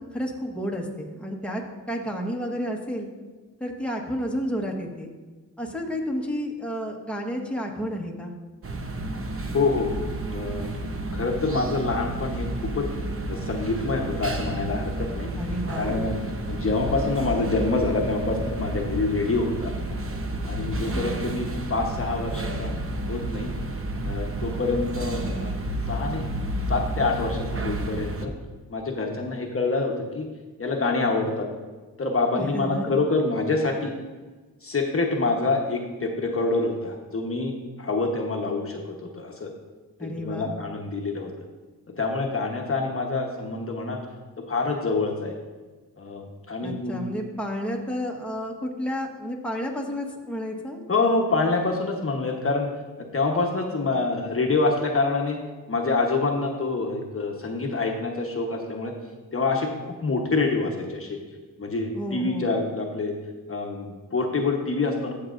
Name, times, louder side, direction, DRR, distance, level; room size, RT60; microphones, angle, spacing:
voice 1, 0.0-1.6 1.9-3.1 3.6-5.1 5.6-8.3 15.4-16.0 20.7-21.2 32.3-33.0 40.0-40.5 46.6-50.8 61.9-62.6, equal, 5° left, 0 dB, 1.3 m, -31 dB
sound 1, 8.6-28.3, right 1 dB, 40° right, 0.9 m, -31 dB
voice 2, 9.5-9.9 10.3-10.7 11.1-12.5 12.7-12.9 13.3-15.3 15.8-16.2 16.5-19.7 20.5-22.7 23.1-23.5 24.0-25.5 25.9-26.2 26.7-28.3 28.7-30.3 30.6-31.5 32.0-33.9 34.6-37.5 37.8-38.8 39.1-39.5 40.0-41.3 42.0-44.0 44.5-45.3 46.0-47.0 50.9-52.7 53.1-55.4 55.7-58.9 59.3-61.2 61.6-63.1 63.5-65.1, left 3 dB, 40° left, 1 dB, 1.1 m, -26 dB
13.0 x 6.5 x 2.6 m, 1.3 s
cardioid pair, 75°, 36 cm